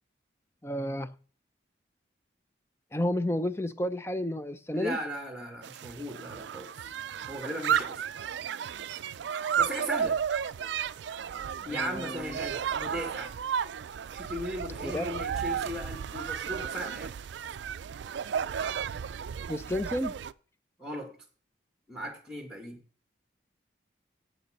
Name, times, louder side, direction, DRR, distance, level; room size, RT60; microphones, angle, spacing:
voice 1, 0.6-1.1 2.9-5.0 11.7-12.4 14.8-15.1 19.5-20.2, left 1 dB, 15° left, 0.5 m, -31 dB
voice 2, 4.7-6.7 7.2-8.0 9.6-10.2 11.6-13.3 14.1-17.1 20.8-21.1 21.9-22.8, equal, 5° right, 1.4 m, -37 dB
sound 1, 5.6-20.3, right 8 dB, 70° right, 0.4 m, -33 dB
7.7 x 6.5 x 6.5 m
head